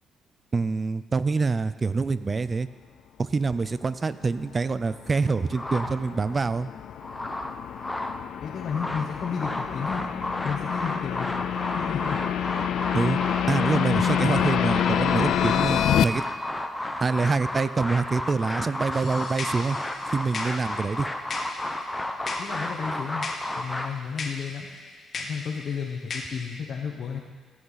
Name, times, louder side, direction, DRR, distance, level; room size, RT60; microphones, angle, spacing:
voice 1, 0.5-2.7 3.2-6.7 12.9-13.2 13.5-16.2 17.0-19.8 20.1-21.1, right 4 dB, 30° right, 15 dB, 0.4 m, -26 dB
sound 1, 4.6-16.0, left 10 dB, 75° left, 0.4 m, -27 dB
sound 2, 5.5-6.4 6.8-8.2 8.6-23.9, left 1 dB, 10° left, 0.8 m, -32 dB
voice 2, 8.4-10.0 10.4-11.3 11.7-12.2 22.4-23.2 23.5-24.7 25.1-27.2, left 6 dB, 60° left, -2 dB, 1.2 m, -32 dB
sound 3, 18.9-26.6, left 3 dB, 40° left, 1.4 m, -39 dB
15.5 x 8.0 x 4.0 m, 1.5 s
cardioid pair, 90°, 0 cm